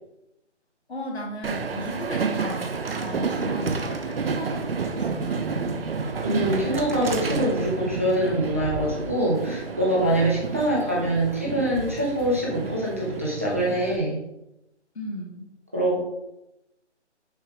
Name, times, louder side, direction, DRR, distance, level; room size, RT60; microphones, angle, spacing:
voice 1, 0.9-5.8 14.9-15.5, left 1 dB, 60° left, -1 dB, 2.0 m, -36 dB
Train, 1.4-14.0, right 4 dB, 55° right, 0.7 m, -30 dB
voice 2, 6.2-14.2 15.7-16.0, right 1 dB, 10° right, -5 dB, 0.6 m, -24 dB
6.5 x 3.2 x 4.9 m, 0.88 s
hypercardioid pair, 170°, 36 cm